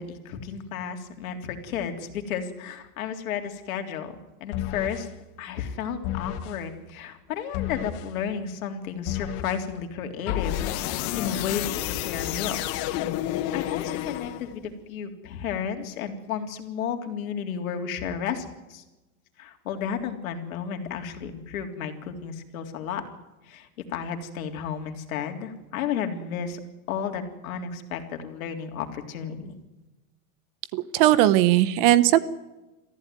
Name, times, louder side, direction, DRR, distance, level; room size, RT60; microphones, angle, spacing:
voice 1, 0.0-5.1 5.4-12.9 13.5-18.8 19.4-23.0 23.5-26.6 26.9-29.5, left 7 dB, 65° left, 5 dB, 3.6 m, -33 dB
sound 1, 4.5-5.1 6.0-6.6 7.5-8.1 9.1-9.6 10.3-14.7, left 13 dB, 35° left, 1.1 m, -30 dB
voice 2, 30.7-32.2, right 14 dB, 35° right, 17 dB, 0.9 m, -18 dB
23.0 x 15.0 x 9.4 m, 1.1 s
supercardioid pair, 155°, 44 cm